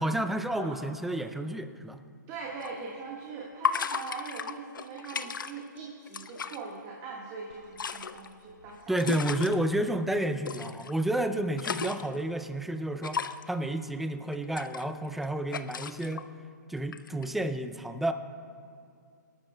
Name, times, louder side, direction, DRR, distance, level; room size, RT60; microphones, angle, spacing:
voice 1, 0.0-2.0 8.9-13.2 13.5-16.2 16.7-18.1, right 1 dB, ahead, 9 dB, 0.3 m, -30 dB
voice 2, 2.3-9.1 11.6-11.8, right 4 dB, 25° right, -2 dB, 1.4 m, -41 dB
sound 1, 2.6-2.7 3.6-5.8 6.1-6.6 7.5-9.6 10.5-10.9 11.3-12.2 13.0-13.5 14.3-15.2 15.5-16.2 16.9-17.2, left 6 dB, 85° left, 0.6 m, -34 dB
27.0 x 12.0 x 2.2 m, 2.3 s
hypercardioid pair, 150°, 11 cm